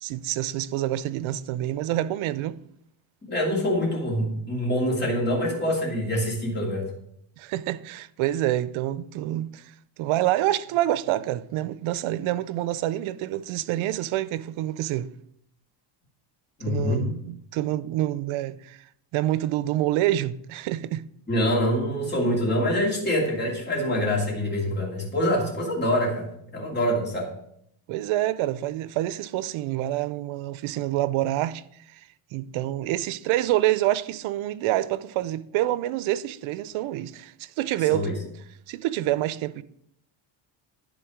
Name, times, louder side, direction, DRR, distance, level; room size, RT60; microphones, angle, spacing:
voice 1, 0.0-2.5 7.4-9.6 10.0-15.1 16.7-18.8 19.1-21.0 27.9-31.6 31.9-32.0 32.3-38.1 38.7-39.6, right 14 dB, 80° right, 0.6 m, -27 dB
voice 2, 3.3-6.9 16.6-17.0 21.3-26.3 26.5-27.3 37.9-38.1, left 1 dB, 20° left, 2.6 m, -25 dB
11.0 x 3.9 x 4.9 m
cardioid pair, 130°, 47 cm